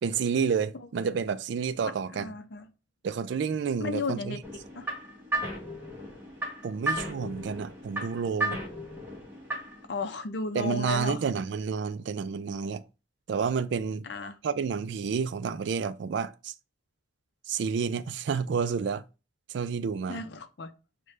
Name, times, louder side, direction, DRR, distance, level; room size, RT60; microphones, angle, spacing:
voice 1, 0.0-2.3 3.0-4.4 6.6-8.6 10.5-12.8 13.3-14.0 14.4-16.5 17.5-19.0 19.5-20.2, right 6 dB, 65° right, 0.3 m, -30 dB
voice 2, 1.8-2.7 3.8-4.4 4.7-4.9 9.9-11.2 14.0-14.4 20.1-20.7, left 4 dB, 60° left, 0.5 m, -34 dB
sound 1, 4.4-9.9, right 1 dB, 10° right, 0.9 m, -35 dB
6.4 x 2.2 x 3.1 m
head